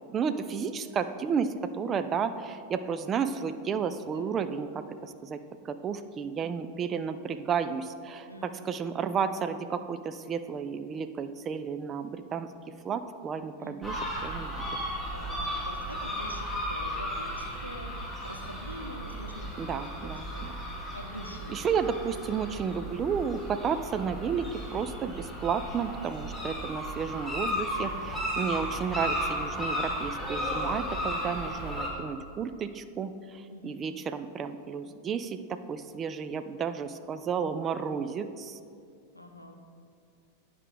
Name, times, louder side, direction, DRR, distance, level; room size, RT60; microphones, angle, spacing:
voice 1, 0.1-4.7 5.0-5.4 5.7-12.5 12.8-14.5 19.6-20.5 21.5-38.6, right 6 dB, 25° right, 10 dB, 0.3 m, -32 dB
voice 2, 4.1-4.4 6.7-6.9 8.3-8.7 13.6-14.0 15.1-20.5 20.9-21.6 27.7-28.1 33.5-33.8 39.1-39.6, equal, 85° left, 4 dB, 0.6 m, -45 dB
sound 1, 13.8-31.9, equal, ahead, 1.4 m, -35 dB
9.7 x 5.1 x 3.4 m, 2.3 s
figure-of-eight pair, 90°, 0 cm